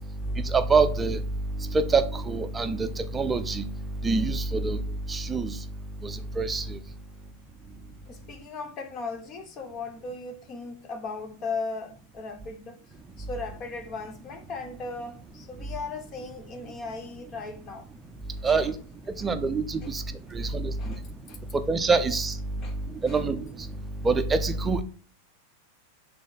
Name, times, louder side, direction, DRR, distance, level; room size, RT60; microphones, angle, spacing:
voice 1, 0.5-1.2 1.7-3.6 4.0-4.8 5.1-5.5 6.0-6.8 18.4-18.7 19.2-20.0 20.3-20.7 21.7-22.3 23.0-23.4 24.0-24.8, right 4 dB, 15° right, 0.6 m, -25 dB
voice 2, 8.1-12.8 13.2-17.9 18.4-18.7 19.2-19.3 19.8-19.9 20.2-20.3 20.8-21.4 22.6-22.8 23.0-23.3, left 3 dB, 30° left, 1.0 m, -37 dB
6.4 x 3.7 x 5.6 m
figure-of-eight pair, 90°, 0 cm